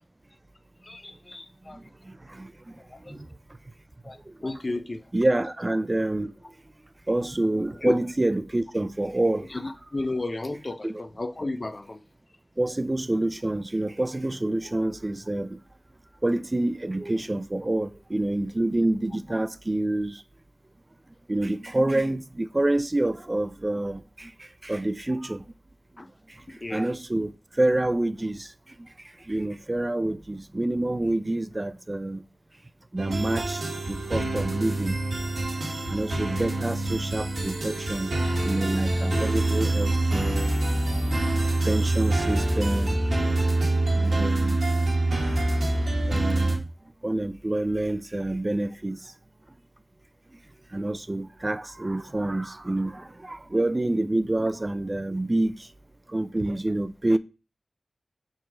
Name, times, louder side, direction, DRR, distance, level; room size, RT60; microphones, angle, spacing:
voice 1, 0.8-1.8 2.9-3.1 4.0-5.0 7.8-7.9 9.5-12.0 26.0-26.1 26.6-26.9, left 2 dB, 40° left, 0.6 m, -33 dB
voice 2, 2.1-2.5 3.1-3.3 5.1-6.3 7.1-9.5 10.8-11.0 12.6-15.6 16.2-20.2 21.3-24.3 24.6-25.4 26.7-27.3 27.6-28.5 28.8-28.9 29.3-32.2 32.9-33.6 33.9-35.0 35.9-38.1 38.4-40.5 41.7-43.0 43.9-44.6 46.1-46.5 47.0-49.0 50.7-55.6 56.1-57.2, right 1 dB, 30° right, 0.4 m, -27 dB
sound 1, 33.0-46.6, right 2 dB, 90° right, 1.7 m, -25 dB
4.7 x 4.0 x 4.9 m
wide cardioid pair, 75°, 0 cm